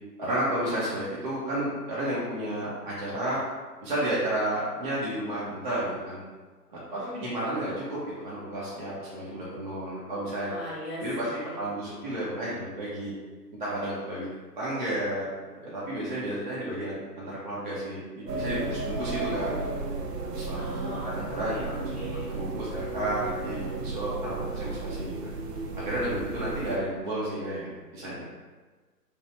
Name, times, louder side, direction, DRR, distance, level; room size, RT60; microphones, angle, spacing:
voice 1, 0.2-3.4 3.8-6.2 6.7-6.8 7.2-8.0 8.2-10.5 11.0-11.3 11.5-13.1 13.6-14.3 14.6-15.3 15.6-19.5 20.2-21.9 22.3-25.3 25.8-28.2, right 1 dB, 30° right, -9 dB, 0.5 m, -32 dB
voice 2, 6.9-7.2 10.5-11.6 20.5-21.2 21.5-22.3, equal, 5° left, -14 dB, 0.7 m, -39 dB
sound 1, 18.3-26.8, right 3 dB, 75° right, 0.6 m, -34 dB
2.9 x 2.1 x 3.1 m, 1.4 s
figure-of-eight pair, 135°, 49 cm